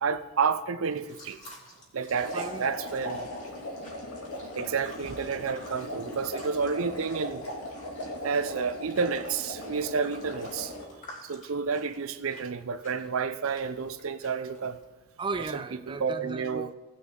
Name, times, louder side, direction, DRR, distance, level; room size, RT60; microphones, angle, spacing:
voice 1, 0.0-1.4 1.9-3.2 4.5-7.5 8.2-10.7 11.2-14.8 15.9-16.7, right 5 dB, 75° right, 0.6 m, -30 dB
sound 1, 0.8-14.8, left 1 dB, 35° left, 3.2 m, -52 dB
sound 2, 2.1-10.9, left 1 dB, 90° left, 2.2 m, -38 dB
voice 2, 2.3-2.7 15.2-16.7, right 4 dB, 20° right, 0.3 m, -35 dB
18.0 x 6.0 x 3.8 m
head